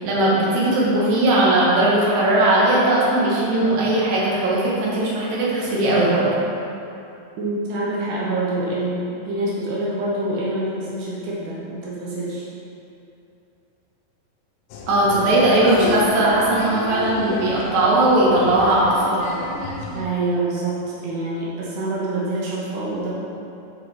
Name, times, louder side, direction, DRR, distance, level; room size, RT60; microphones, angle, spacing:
voice 1, 0.0-6.3 14.9-19.4, right 1 dB, 65° right, -6 dB, 2.0 m, -18 dB
voice 2, 7.4-12.5 19.9-23.1, right 2 dB, 85° right, -6 dB, 1.7 m, -26 dB
Applause, 14.7-20.0, left 4 dB, 85° left, 2.7 m, -32 dB
9.1 x 4.1 x 4.3 m, 2.7 s
omnidirectional pair, 5.0 m